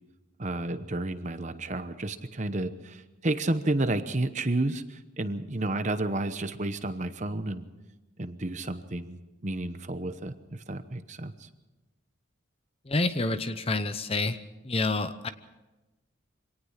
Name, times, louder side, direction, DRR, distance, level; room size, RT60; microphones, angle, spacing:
voice 1, 0.4-7.7 8.2-11.5, right 2 dB, 35° right, 10 dB, 1.0 m, -31 dB
voice 2, 12.9-14.4 14.6-15.3, left 2 dB, 30° left, 11 dB, 0.8 m, -28 dB
25.0 x 18.5 x 5.8 m, 1.1 s
head